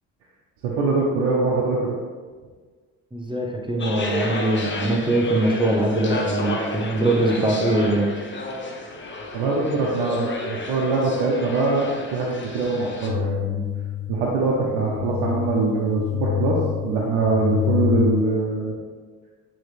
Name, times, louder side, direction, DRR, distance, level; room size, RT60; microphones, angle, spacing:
voice 1, 0.6-1.9 9.3-13.6 14.1-16.6 16.8-18.7, right 3 dB, 70° right, -4 dB, 1.1 m, -23 dB
voice 2, 3.1-8.1, right 1 dB, 10° right, 1 dB, 0.9 m, -22 dB
sound 1, 3.8-13.1, left 2 dB, 25° left, 1.1 m, -31 dB
sound 2, 13.1-18.2, left 12 dB, 80° left, 0.6 m, -27 dB
9.0 x 3.4 x 3.4 m, 1.5 s
hypercardioid pair, 60°, 46 cm